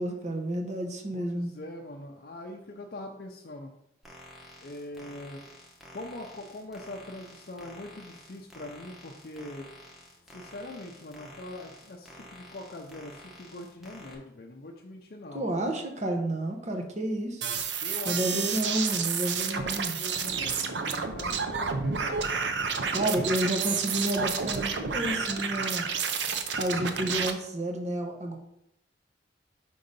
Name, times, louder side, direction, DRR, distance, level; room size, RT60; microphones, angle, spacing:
voice 1, 0.0-1.5 15.3-17.4 18.0-20.0 22.9-25.8 26.6-28.4, right 1 dB, 40° right, 2 dB, 0.9 m, -30 dB
voice 2, 1.1-3.7 4.6-5.4 5.9-9.7 10.3-15.5 17.8-18.6 19.4-22.2 22.8-23.3, left 1 dB, 55° left, 1 dB, 0.5 m, -42 dB
sound 1, 4.0-14.2, equal, ahead, 1.0 m, -50 dB
sound 2, 17.4-27.3, right 6 dB, 75° right, 0.6 m, -30 dB
5.3 x 3.8 x 5.3 m, 0.81 s
head